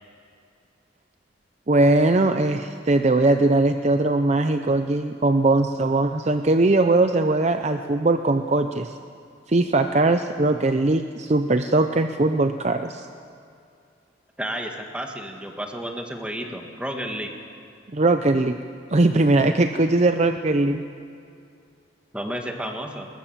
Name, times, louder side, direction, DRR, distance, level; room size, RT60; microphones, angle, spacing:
voice 1, 1.7-9.0 9.5-13.1 17.9-18.6 18.9-20.8, right 2 dB, 35° right, 8 dB, 0.6 m, -20 dB
voice 2, 14.4-17.3 22.1-23.1, equal, 5° right, 3 dB, 1.7 m, -31 dB
21.0 x 20.0 x 7.3 m, 2.4 s
head